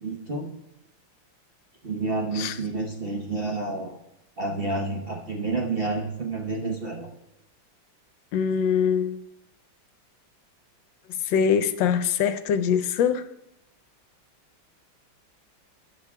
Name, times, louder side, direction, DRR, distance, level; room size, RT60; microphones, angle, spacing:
voice 1, 0.0-0.5 1.8-4.0 4.4-7.1, right 3 dB, 40° right, 0 dB, 0.9 m, -29 dB
voice 2, 8.3-9.2 11.1-13.3, left 7 dB, 75° left, 11 dB, 1.3 m, -23 dB
13.0 x 8.8 x 3.6 m, 0.84 s
omnidirectional pair, 2.1 m